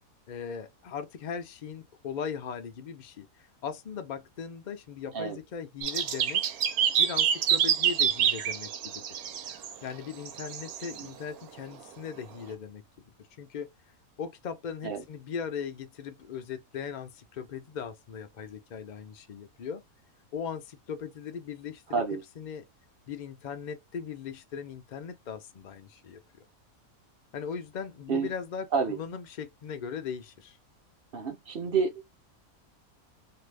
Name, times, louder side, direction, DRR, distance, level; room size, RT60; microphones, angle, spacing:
voice 1, 0.3-6.4 7.0-9.3 9.8-12.8 13.4-13.7 14.2-19.8 20.3-22.6 23.1-26.2 27.3-30.6, left 7 dB, 85° left, 0.4 m, -39 dB
sound 1, 5.8-9.8 10.3-11.0, right 8 dB, 85° right, 1.1 m, -27 dB
voice 2, 21.9-22.2 28.1-28.3 28.7-29.0 31.1-32.1, right 5 dB, 50° right, 0.7 m, -29 dB
2.7 x 2.3 x 3.3 m
omnidirectional pair, 1.5 m